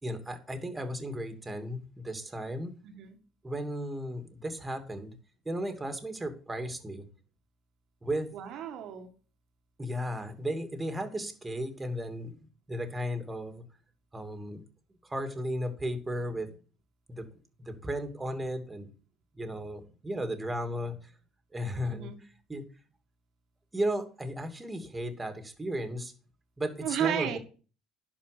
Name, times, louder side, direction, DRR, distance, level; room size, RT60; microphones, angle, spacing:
voice 1, 0.0-2.8 3.4-5.1 5.4-7.0 8.0-8.3 9.8-12.4 12.7-13.6 14.1-14.6 15.0-16.5 17.1-17.3 17.6-18.9 19.3-21.1 21.5-22.1 22.5-22.6 23.7-26.1 26.6-27.4, equal, 15° right, 7 dB, 2.7 m, -35 dB
voice 2, 2.8-3.2 8.3-9.1 21.8-22.2 26.8-27.4, right 10 dB, 65° right, 6 dB, 1.8 m, -33 dB
11.5 x 5.2 x 6.8 m, 0.37 s
hypercardioid pair, 70°, 0 cm